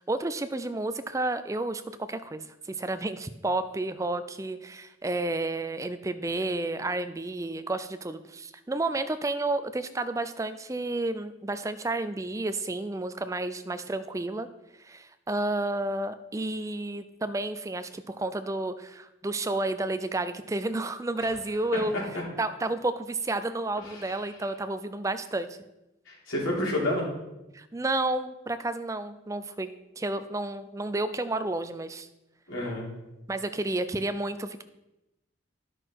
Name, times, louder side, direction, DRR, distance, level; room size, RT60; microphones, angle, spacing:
voice 1, 0.1-14.5 14.8-22.0 22.4-25.5 27.5-32.1 33.3-34.6, right 2 dB, 15° right, 11 dB, 0.4 m, -31 dB
voice 2, 23.8-24.2 26.1-27.1 32.5-32.9, left 1 dB, 90° left, -4 dB, 3.5 m, -30 dB
11.0 x 6.1 x 4.6 m, 0.96 s
head